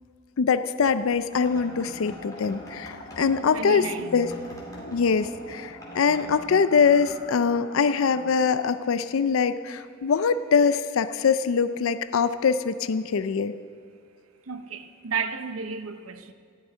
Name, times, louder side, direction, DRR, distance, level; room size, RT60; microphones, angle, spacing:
voice 1, 0.4-4.3 4.8-13.5, left 5 dB, 75° left, 0.4 m, -23 dB
sound 1, 0.8-7.1, left 1 dB, 15° left, 2.3 m, -48 dB
sound 2, 1.4-8.3, equal, 35° left, 3.0 m, -42 dB
voice 2, 3.2-4.1 14.5-16.3, right 5 dB, 90° right, 0.8 m, -33 dB
14.0 x 6.3 x 9.2 m
head